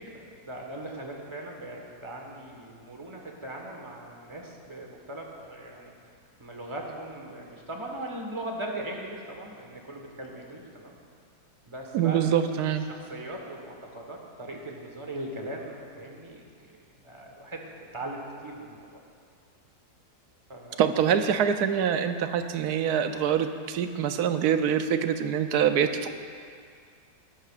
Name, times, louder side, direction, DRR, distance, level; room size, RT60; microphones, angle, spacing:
voice 1, 0.0-5.9 6.4-11.0 11.7-12.3 12.6-19.0 20.5-20.8, right 1 dB, 20° right, 0 dB, 1.3 m, -39 dB
voice 2, 11.9-12.8 20.8-26.2, right 8 dB, 75° right, 8 dB, 1.2 m, -25 dB
18.5 x 11.0 x 2.5 m, 2.2 s
omnidirectional pair, 1.7 m